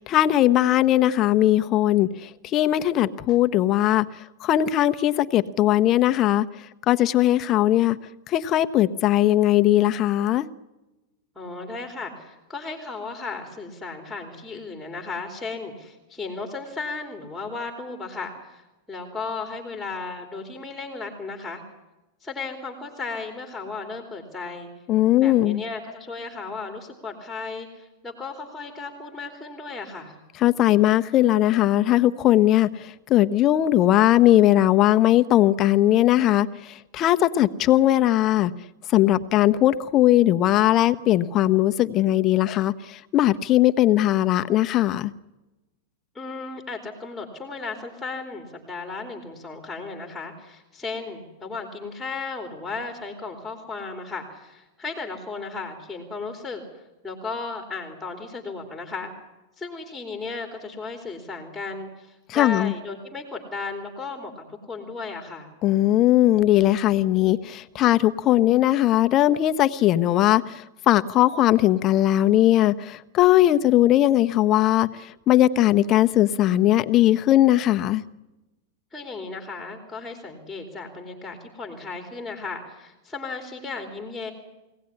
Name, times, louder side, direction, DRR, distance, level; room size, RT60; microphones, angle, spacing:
voice 1, 0.0-8.0 8.3-10.5 24.9-25.6 30.4-38.5 38.9-45.1 62.3-62.7 65.6-78.0, left 13 dB, 35° left, 10 dB, 0.8 m, -19 dB
voice 2, 11.3-18.6 18.9-21.6 22.2-24.7 25.2-30.2 46.1-59.1 59.6-65.5 78.9-84.3, left 4 dB, 5° left, 4 dB, 3.3 m, -35 dB
24.0 x 17.5 x 9.7 m, 1.0 s
supercardioid pair, 145°, 0 cm